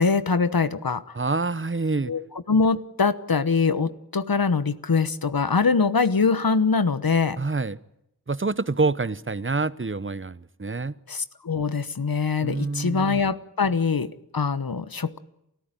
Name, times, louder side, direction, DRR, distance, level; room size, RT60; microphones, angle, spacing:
voice 1, 0.0-1.0 2.1-7.4 11.1-15.2, left 4 dB, 70° left, 1.2 m, -23 dB
voice 2, 1.1-2.1 7.4-7.8 8.3-10.9 12.4-13.2, right 3 dB, 35° right, 0.9 m, -27 dB
29.0 x 14.0 x 9.1 m
wide cardioid pair, 50°, 36 cm